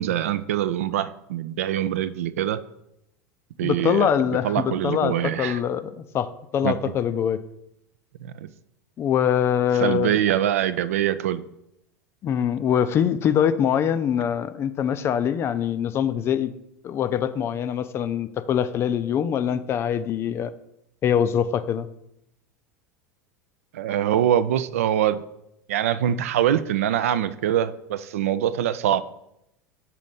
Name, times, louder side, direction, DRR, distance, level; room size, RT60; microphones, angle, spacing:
voice 1, 0.0-2.6 3.6-4.1 4.4-5.6 6.6-6.8 8.2-8.5 9.8-11.4 23.7-25.2 25.7-29.0, right 11 dB, 60° right, 14 dB, 0.4 m, -24 dB
voice 2, 3.6-7.4 9.0-10.1 12.2-16.5 16.8-20.5 21.0-21.9, left 9 dB, 30° left, 12 dB, 0.4 m, -23 dB
6.1 x 4.1 x 5.5 m, 0.82 s
figure-of-eight pair, 80°, 9 cm